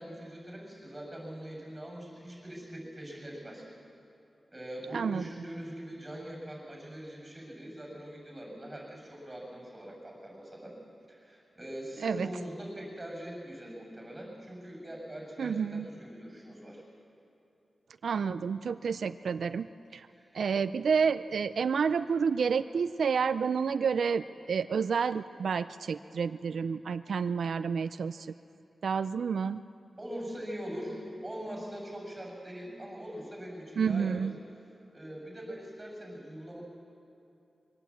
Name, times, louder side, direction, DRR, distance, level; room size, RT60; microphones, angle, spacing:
voice 1, 0.0-3.6 4.5-10.8 11.1-16.8 20.1-20.4 30.0-34.3 34.9-36.6, equal, 15° right, 0 dB, 6.7 m, -42 dB
voice 2, 4.9-5.2 12.0-12.3 15.4-15.9 18.0-19.7 19.9-20.1 20.3-28.3 28.8-29.6 33.8-34.4, right 6 dB, 85° right, 11 dB, 0.4 m, -29 dB
23.0 x 17.5 x 8.5 m, 2.7 s
wide cardioid pair, 130°, 0 cm